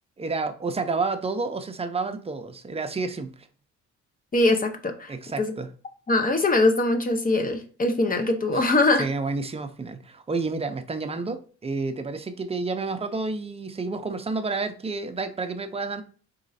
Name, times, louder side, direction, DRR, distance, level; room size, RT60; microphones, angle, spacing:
voice 1, 0.2-3.5 5.1-5.7 9.0-16.0, right 3 dB, 20° right, 0.6 m, -30 dB
voice 2, 4.3-5.5 6.1-9.1, left 2 dB, 30° left, 0.8 m, -22 dB
3.8 x 3.1 x 4.1 m
cardioid pair, 90°, 30 cm